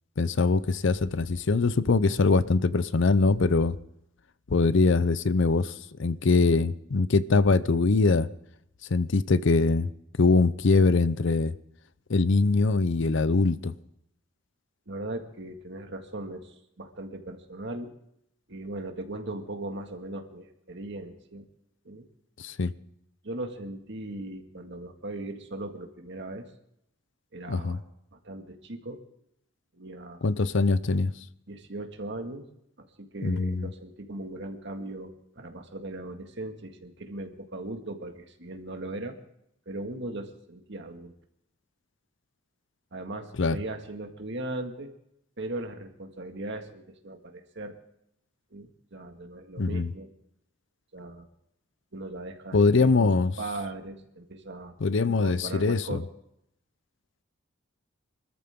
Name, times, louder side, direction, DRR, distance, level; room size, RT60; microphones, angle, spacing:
voice 1, 0.2-3.8 4.5-5.7 6.0-8.3 8.9-9.9 10.2-11.5 12.1-13.7 22.4-22.7 27.5-27.8 30.2-31.1 33.2-33.7 43.4-43.6 49.6-49.9 52.5-53.3 54.8-56.0, left 3 dB, 65° left, 0.6 m, -23 dB
voice 2, 14.9-17.9 18.5-21.4 21.9-22.0 23.2-26.5 27.3-27.8 28.2-29.0 29.7-30.2 31.5-32.5 32.8-39.2 39.7-41.1 42.9-44.9 45.4-47.8 48.5-50.1 50.9-51.3 51.9-53.1 53.4-54.7 55.1-56.1, right 2 dB, 60° right, 1.9 m, -38 dB
24.5 x 13.5 x 3.7 m
head